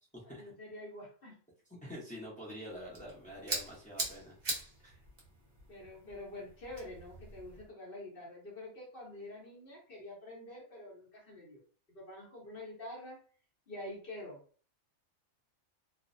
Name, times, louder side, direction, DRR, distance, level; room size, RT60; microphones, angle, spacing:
voice 1, 0.2-1.4 4.9-5.0 5.7-11.6 11.9-13.2 13.7-14.4, left 1 dB, 50° left, -2 dB, 0.8 m, -47 dB
voice 2, 1.7-4.3 4.8-5.0, equal, 15° left, -6 dB, 0.3 m, -46 dB
sound 1, 2.7-7.7, right 2 dB, 40° right, 0.7 m, -42 dB
2.4 x 2.0 x 2.5 m, 0.42 s
omnidirectional pair, 1.5 m